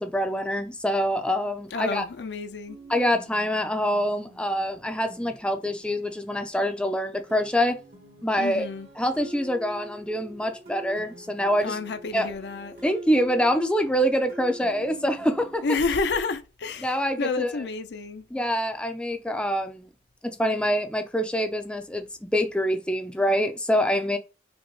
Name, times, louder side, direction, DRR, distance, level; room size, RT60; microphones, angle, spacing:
voice 1, 0.0-2.0 2.9-7.8 8.2-8.7 9.0-11.8 12.1-12.3 12.8-15.6 16.8-17.5 18.3-19.9 20.2-22.0 22.3-24.2, equal, 5° left, 0.4 m, -25 dB
voice 2, 1.7-2.8 8.4-8.9 11.6-12.8 15.6-18.3, left 4 dB, 75° left, 0.5 m, -29 dB
sound 1, 2.7-6.7 7.3-15.6, right 1 dB, 75° right, 1.6 m, -45 dB
5.1 x 2.1 x 3.1 m
head